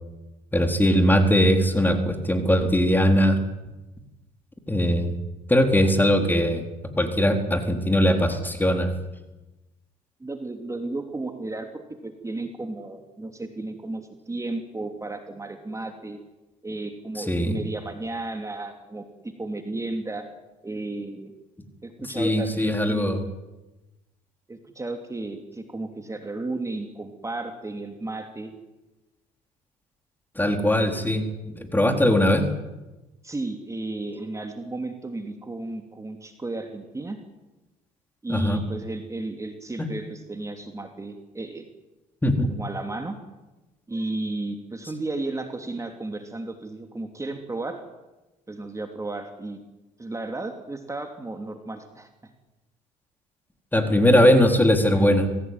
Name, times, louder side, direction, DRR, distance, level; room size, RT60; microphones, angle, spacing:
voice 1, 0.5-3.4 4.7-5.1 5.5-6.6 7.0-8.9 17.2-17.6 22.1-23.2 30.4-32.5 38.3-38.6 39.8-39.9 42.2-42.5 53.7-55.3, equal, 10° left, 6 dB, 4.2 m, -20 dB
voice 2, 10.2-16.2 16.6-20.3 20.6-21.3 21.8-23.1 24.5-28.5 33.2-37.2 38.2-41.7 42.6-43.2 43.9-47.8 48.5-49.6 50.0-52.3, right 2 dB, 20° right, 5 dB, 3.0 m, -33 dB
23.5 x 16.5 x 9.7 m, 1.1 s
supercardioid pair, 70°, 17 cm